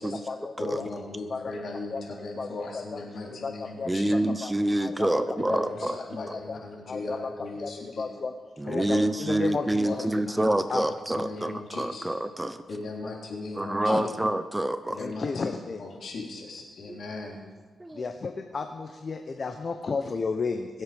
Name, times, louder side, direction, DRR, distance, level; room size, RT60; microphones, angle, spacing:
voice 1, 0.6-4.1 5.5-8.2 8.7-9.0 9.8-10.4 11.1-12.0 12.7-14.0 14.9-15.5 15.8-17.4, left 3 dB, 65° left, -1 dB, 3.6 m, -37 dB
voice 2, 3.9-6.0 8.6-12.6 13.5-15.0 16.9-17.0 17.8-18.1, right 1 dB, 15° right, 11 dB, 0.7 m, -27 dB
voice 3, 6.2-6.6 6.9-7.2 7.6-7.7 8.0-8.3 8.7-9.9 10.7-10.8 13.9-14.1 15.0-15.8 18.0-20.7, left 4 dB, 45° left, 6 dB, 1.0 m, -32 dB
23.0 x 8.0 x 5.3 m, 1.4 s
cardioid pair, 90°, 0 cm